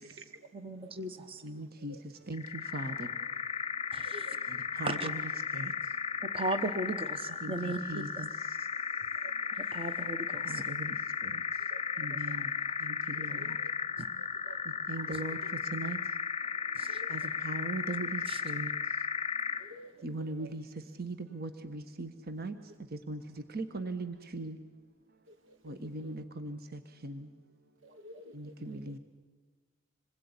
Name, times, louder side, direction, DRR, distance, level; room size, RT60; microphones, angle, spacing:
voice 1, 0.5-1.4 3.9-4.3 4.8-5.1 6.2-8.3 9.6-10.6 14.0-14.1 16.7-17.0 18.3-18.4, right 2 dB, 30° right, 10 dB, 1.1 m, -37 dB
voice 2, 1.4-2.0 2.3-3.1 4.5-5.7 7.4-8.3 10.4-11.0 11.2-11.4 12.0-12.5 12.8-13.6 14.9-15.4 15.6-16.0 17.1-18.7 20.0-20.7 21.0-22.6 22.9-23.2 23.5-24.6 25.6-27.3 28.3-29.0, right 2 dB, 50° right, 9 dB, 1.5 m, -39 dB
sound 1, 2.3-19.8, left 6 dB, 30° left, 0.8 m, -35 dB
voice 3, 13.2-13.5 14.2-14.6 16.9-17.1 19.6-19.9 20.4-20.5 25.3-25.6 26.0-26.1 27.8-28.5 28.8-28.9, right 1 dB, 80° right, 7 dB, 2.8 m, -51 dB
27.5 x 21.0 x 9.8 m, 1.3 s
head